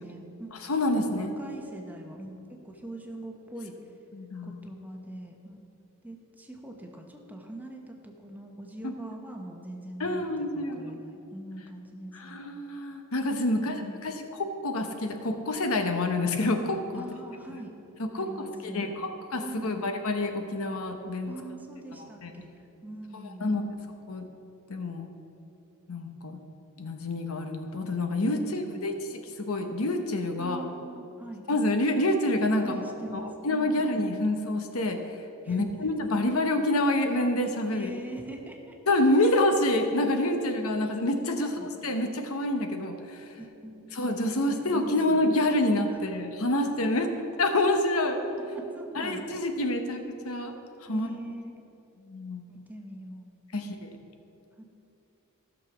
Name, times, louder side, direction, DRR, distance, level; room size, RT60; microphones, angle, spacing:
voice 1, 0.0-0.5 0.9-3.7 4.4-5.6 6.0-10.3 10.5-12.4 13.5-14.1 16.9-17.8 18.2-18.9 19.4-19.8 21.3-22.5 22.8-23.6 28.2-29.0 30.4-31.5 32.6-33.9 35.4-36.2 37.7-38.8 39.2-39.4 41.3-41.7 43.4-44.0 44.3-45.3 45.9-46.0 46.6-46.9 48.4-49.2 50.9-51.6 52.5-53.7 54.6-54.7, right 1 dB, 10° right, 1 dB, 1.1 m, -42 dB
voice 2, 0.6-1.3 4.1-4.6 8.8-8.9 10.0-11.0 12.1-17.0 18.1-18.3 18.6-21.3 22.0-22.3 23.4-23.7 24.1-24.3 24.7-25.1 25.9-26.4 26.8-28.9 29.4-30.6 31.5-32.8 33.1-35.0 35.5-37.9 38.9-43.2 43.9-47.1 47.4-48.2 48.9-50.5 50.8-51.1 52.1-52.4 53.5-54.0, left 1 dB, 70° left, 6 dB, 1.0 m, -27 dB
15.0 x 6.4 x 6.0 m, 3.0 s
head